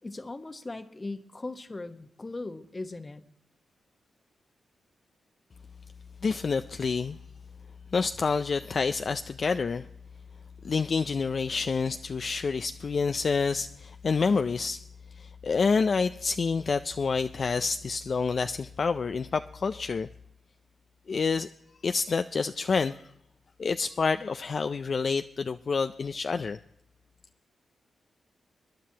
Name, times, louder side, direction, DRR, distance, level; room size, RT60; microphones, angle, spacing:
voice 1, 0.0-3.2, left 2 dB, 30° left, 8 dB, 1.1 m, -39 dB
voice 2, 6.2-7.2 7.9-9.9 10.6-14.8 15.2-20.1 21.1-21.5 21.8-23.0 23.6-26.6, left 5 dB, 55° left, 9 dB, 0.4 m, -28 dB
24.5 x 10.0 x 2.8 m, 0.76 s
cardioid pair, 60°, 0 cm